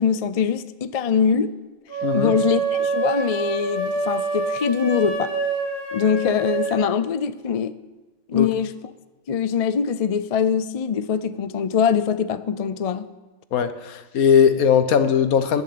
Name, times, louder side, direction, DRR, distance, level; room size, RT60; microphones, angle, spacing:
voice 1, 0.0-1.5 2.1-5.3 5.9-7.7 8.3-8.8 9.3-13.1, left 7 dB, 50° left, 14 dB, 0.4 m, -23 dB
sound 1, 1.9-6.9, right 3 dB, 15° left, 3.4 m, -26 dB
voice 2, 2.0-2.3 8.3-8.5 13.5-15.6, left 7 dB, 80° left, 11 dB, 1.5 m, -19 dB
20.5 x 7.2 x 8.5 m, 1.2 s
omnidirectional pair, 1.5 m